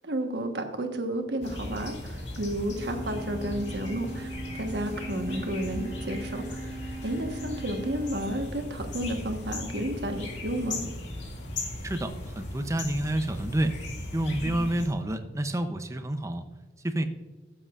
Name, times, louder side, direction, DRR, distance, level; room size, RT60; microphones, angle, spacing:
voice 1, 0.0-6.7 7.0-10.8 14.4-14.6, right 1 dB, 70° right, 4 dB, 1.2 m, -32 dB
sound 1, 1.4-14.9, left 1 dB, 90° left, 1.9 m, -37 dB
sound 2, 2.8-8.8, right 3 dB, 45° right, 1.1 m, -41 dB
voice 2, 11.8-13.7 14.1-16.4 16.8-17.0, right 1 dB, 15° right, 8 dB, 0.6 m, -29 dB
14.5 x 7.8 x 2.4 m, 1.3 s
head